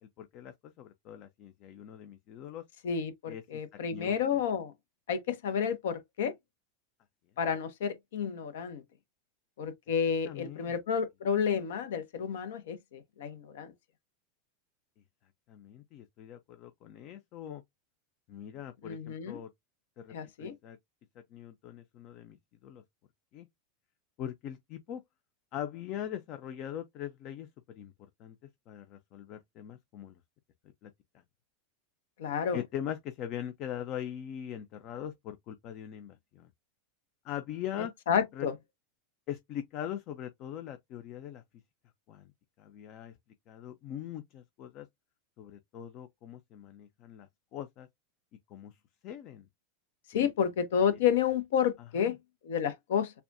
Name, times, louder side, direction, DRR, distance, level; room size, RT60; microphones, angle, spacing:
voice 1, 0.0-2.6 3.3-3.6 3.9-4.4 10.3-10.7 15.5-17.6 18.3-19.5 20.0-20.8 21.3-22.4 22.6-22.8 23.3-23.5 24.2-25.0 25.5-27.9 28.2-28.4 28.7-30.2 30.8-30.9 32.5-36.5 37.2-37.9 38.3-38.5 39.3-41.4 42.1-42.3 42.6-43.2 43.5-44.9 45.4-47.9 48.5-48.8 49.0-49.5 50.1-50.3 51.8-52.2, left 10 dB, 50° left, 0.6 m, -41 dB
voice 2, 2.8-4.7 5.1-6.3 7.4-8.8 9.6-13.7 18.8-19.4 20.1-20.6 32.2-32.6 38.1-38.5 50.1-52.2 52.4-53.1, left 7 dB, 70° left, 0.9 m, -30 dB
6.8 x 2.3 x 2.6 m
hypercardioid pair, 90°, 0 cm